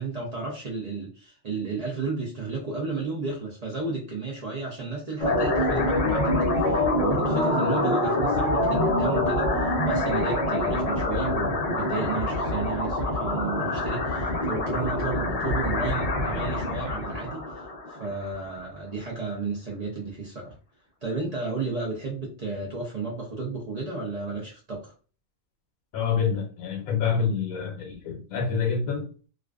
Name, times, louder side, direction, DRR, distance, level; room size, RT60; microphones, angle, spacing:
voice 1, 0.0-6.3 6.6-17.5 17.9-20.5 21.0-24.9, right 4 dB, 75° right, 0.3 m, -33 dB
sound 1, 5.2-18.3, left 1 dB, 60° left, 0.4 m, -25 dB
voice 2, 25.9-29.3, left 6 dB, 80° left, 1.0 m, -27 dB
2.4 x 2.4 x 2.3 m
omnidirectional pair, 1.4 m